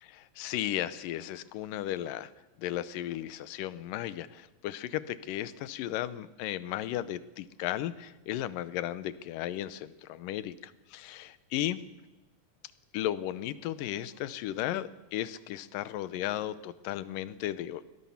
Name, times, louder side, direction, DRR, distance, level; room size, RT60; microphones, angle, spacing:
voice 1, 0.0-2.3 2.6-11.8 12.9-17.8, left 13 dB, 85° left, 16 dB, 2.5 m, -35 dB
22.5 x 17.0 x 7.1 m, 1.1 s
omnidirectional pair, 3.8 m